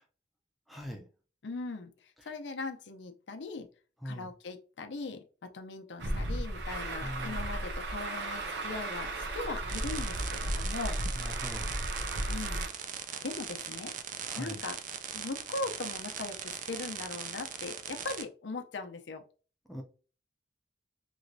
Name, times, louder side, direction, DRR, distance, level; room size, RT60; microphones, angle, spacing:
voice 1, 0.7-1.1 4.0-4.3 7.0-7.4 11.1-11.7 13.0-13.2 14.3-14.6 19.7-19.8, equal, ahead, 1 dB, 0.6 m, -42 dB
voice 2, 1.4-3.7 4.0-5.2 5.5-11.0 12.3-12.7 13.2-13.9 14.4-14.8 15.1-19.2, left 3 dB, 90° left, 6 dB, 0.6 m, -39 dB
Truck, 6.0-12.7, right 1 dB, 75° right, 0.7 m, -35 dB
sound 1, 9.7-18.2, right 8 dB, 45° right, 0.4 m, -40 dB
3.1 x 3.0 x 2.7 m, 0.37 s
head